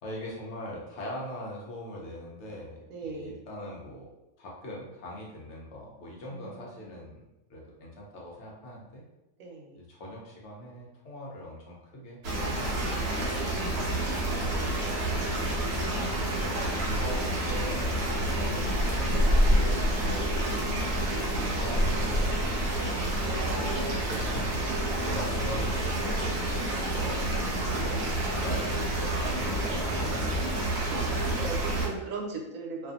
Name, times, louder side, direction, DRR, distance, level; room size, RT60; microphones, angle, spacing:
voice 1, 0.0-4.1 4.4-7.2 7.5-9.0 9.7-15.1 15.9-17.8 18.2-21.0 21.6-22.3 23.2-24.6 25.0-30.3, left 1 dB, 65° left, -3 dB, 0.9 m, -42 dB
voice 2, 2.9-3.5 6.3-7.0 9.4-9.8 21.7-22.3 30.7-32.9, right 3 dB, 90° right, -1 dB, 1.0 m, -41 dB
sound 1, 12.2-31.9, right 1 dB, 60° right, 0.8 m, -28 dB
Musical instrument, 16.8-21.3, left 4 dB, 85° left, 1.3 m, -42 dB
2.6 x 2.5 x 2.4 m, 0.97 s
omnidirectional pair, 1.4 m